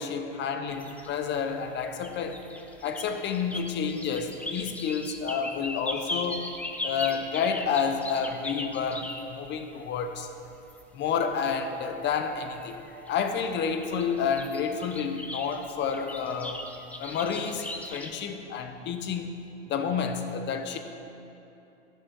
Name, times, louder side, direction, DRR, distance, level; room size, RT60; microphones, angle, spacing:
voice 1, 0.0-2.4 2.8-6.5 6.8-10.3 10.9-16.7 17.0-19.4 19.7-20.8, left 6 dB, 30° left, 7 dB, 0.8 m, -30 dB
Dawn chorus Tuscany, 0.7-9.5 9.9-10.8 11.5-11.6 12.0-13.4 13.7-18.1, left 1 dB, 5° left, 0.5 m, -39 dB
12.0 x 6.1 x 4.6 m, 2.8 s
figure-of-eight pair, 90°, 37 cm